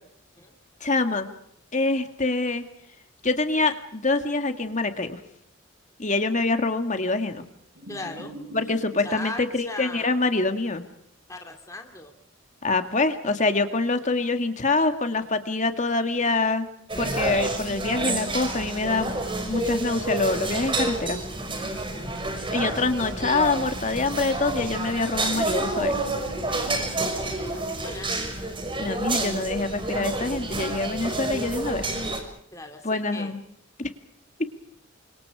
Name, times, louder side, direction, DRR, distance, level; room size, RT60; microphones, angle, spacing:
voice 1, 0.8-1.3 1.7-2.7 3.2-5.2 6.0-7.4 8.5-10.8 12.6-16.7 17.0-19.1 19.4-21.2 22.5-26.0 28.8-31.8 32.8-33.4 33.8-33.9, left 3 dB, 40° left, 7 dB, 2.1 m, -25 dB
sound 1, 7.7-9.3 11.4-11.5, right 1 dB, 70° right, 4.6 m, -42 dB
voice 2, 7.9-8.4 8.6-8.7 9.0-10.2 11.3-12.1 15.2-15.3 21.6-21.9 26.5-28.4 32.5-33.3, left 2 dB, 15° left, 3 dB, 2.6 m, -40 dB
sound 2, 16.9-32.2, right 2 dB, 25° right, 5.7 m, -29 dB
29.5 x 26.0 x 4.9 m, 0.69 s
head